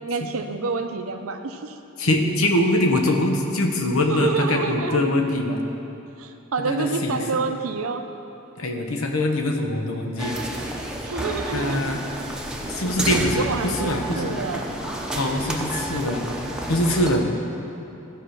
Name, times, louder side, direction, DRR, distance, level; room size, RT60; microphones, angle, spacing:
voice 1, 0.0-1.8 4.1-5.0 6.2-8.0 11.0-11.8 13.3-14.7, right 4 dB, 75° right, 6 dB, 0.7 m, -28 dB
voice 2, 2.0-5.6 6.6-7.2 8.6-10.4 11.5-12.0 12.7-14.4 15.1-16.2 16.7-17.3, left 1 dB, 85° left, 3 dB, 1.1 m, -23 dB
sound 1, 10.2-17.2, right 1 dB, 5° right, 0.8 m, -30 dB
14.5 x 5.0 x 6.4 m, 2.9 s
head